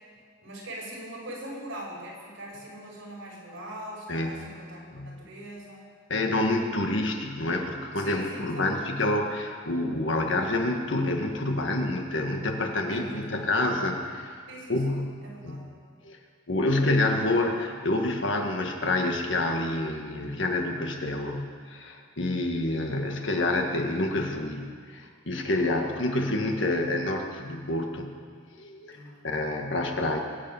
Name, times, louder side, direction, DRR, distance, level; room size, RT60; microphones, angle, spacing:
voice 1, 0.4-5.8 8.0-9.0 12.9-13.5 14.5-15.7 28.9-29.3, right 1 dB, 70° right, -3 dB, 5.5 m, -42 dB
voice 2, 4.1-4.4 4.9-5.2 6.1-14.3 14.7-15.1 15.4-15.6 16.0-16.2 16.5-28.1 28.6-29.0 29.2-30.2, left 2 dB, 65° left, 3 dB, 1.8 m, -28 dB
22.0 x 8.9 x 7.2 m, 2.1 s
head